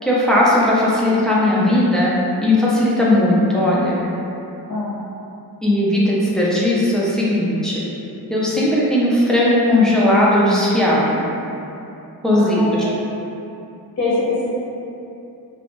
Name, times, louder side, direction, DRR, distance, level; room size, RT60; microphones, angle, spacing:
voice 1, 0.0-2.1 2.4-4.0 5.6-7.8 8.3-11.2 12.2-12.8, left 1 dB, ahead, -7 dB, 0.4 m, -17 dB
voice 2, 12.3-12.9 14.0-14.5, left 2 dB, 40° left, -9 dB, 0.7 m, -23 dB
2.5 x 2.1 x 2.9 m, 2.8 s
cardioid pair, 120°, 39 cm